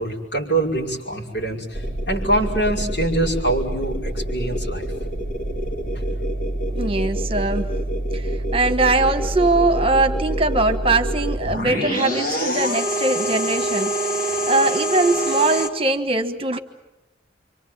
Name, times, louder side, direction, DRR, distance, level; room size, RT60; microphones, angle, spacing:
voice 1, 0.0-1.8 2.1-4.8 5.9-6.1, right 2 dB, 70° left, -1 dB, 5.8 m, -24 dB
sound 1, 1.7-15.7, right 1 dB, 50° left, 2.6 m, -25 dB
voice 2, 6.7-7.7 8.1-13.9 14.5-16.6, right 2 dB, 30° right, 9 dB, 1.4 m, -21 dB
28.0 x 25.0 x 7.5 m, 0.98 s
head